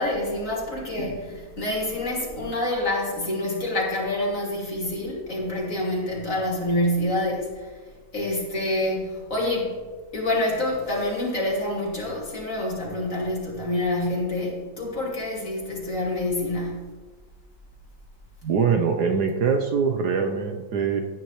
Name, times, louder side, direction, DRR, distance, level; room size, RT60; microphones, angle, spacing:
voice 1, 0.0-7.7 8.1-9.7 10.1-16.9, left 1 dB, 40° left, -3 dB, 3.0 m, -27 dB
voice 2, 18.4-21.0, right 6 dB, 65° right, 4 dB, 1.3 m, -23 dB
15.5 x 9.7 x 3.2 m, 1.4 s
omnidirectional pair, 2.1 m